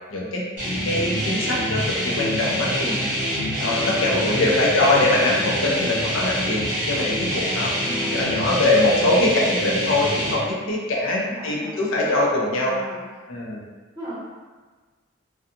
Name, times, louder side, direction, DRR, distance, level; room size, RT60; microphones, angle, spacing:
voice 1, 0.1-0.5 0.8-3.1 3.6-6.6 6.9-7.7 8.1-12.8 13.3-13.6, left 2 dB, 90° left, -3 dB, 0.5 m, -22 dB
sound 1, 0.6-10.3, equal, 40° right, 1.0 m, -26 dB
voice 2, 3.7-4.4 7.8-8.6 11.0-13.1 13.9-14.1, equal, 25° right, -12 dB, 1.3 m, -37 dB
2.7 x 2.2 x 2.5 m, 1.4 s
head